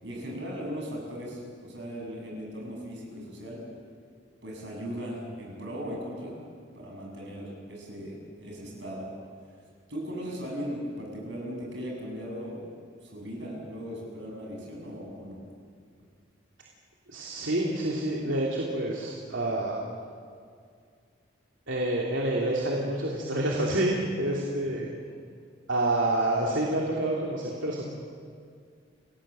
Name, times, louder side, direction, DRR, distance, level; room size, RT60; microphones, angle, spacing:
voice 1, 0.0-3.6 4.4-6.4 6.7-9.1 9.9-12.6 13.0-15.4 24.7-24.8, equal, 70° right, -1 dB, 7.9 m, -38 dB
voice 2, 17.1-19.8 21.7-24.9 25.7-27.8, right 1 dB, 85° right, -3 dB, 3.0 m, -28 dB
29.0 x 18.5 x 7.8 m, 2.2 s
head